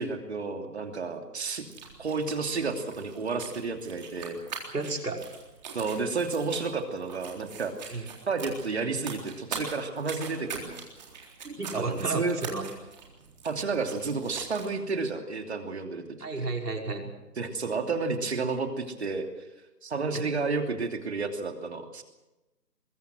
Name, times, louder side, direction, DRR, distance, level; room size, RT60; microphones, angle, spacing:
voice 1, 0.0-1.6 2.0-4.4 5.7-10.8 11.7-12.4 13.4-16.0 16.4-16.5 17.4-19.3 19.8-22.0, right 4 dB, 45° right, 5 dB, 2.9 m, -31 dB
sound 1, 1.6-14.8, right 5 dB, 25° right, 3.8 m, -43 dB
voice 2, 4.7-5.2 7.9-8.1 11.4-12.6 16.2-17.1 20.1-20.2, right 3 dB, 70° right, 1 dB, 5.6 m, -32 dB
23.5 x 22.5 x 6.3 m, 1.0 s
figure-of-eight pair, 165°, 48 cm